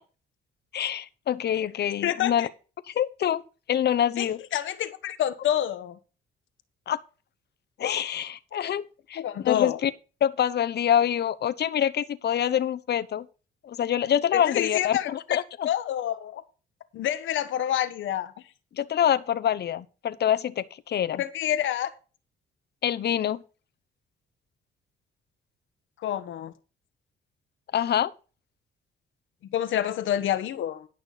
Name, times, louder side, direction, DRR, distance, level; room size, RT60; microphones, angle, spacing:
voice 1, 0.7-2.5 2.9-3.4 3.7-4.4 6.9-7.0 7.8-9.9 10.2-13.2 13.6-15.7 18.8-21.2 22.8-23.4 27.7-28.1, left 10 dB, 55° left, 1.0 m, -26 dB
voice 2, 2.0-2.5 4.2-6.0 9.1-9.8 14.3-15.4 15.6-16.4 16.9-18.3 21.2-21.9 26.0-26.5 29.5-30.9, left 11 dB, 75° left, 1.3 m, -28 dB
11.5 x 6.1 x 5.0 m
cardioid pair, 90°, 20 cm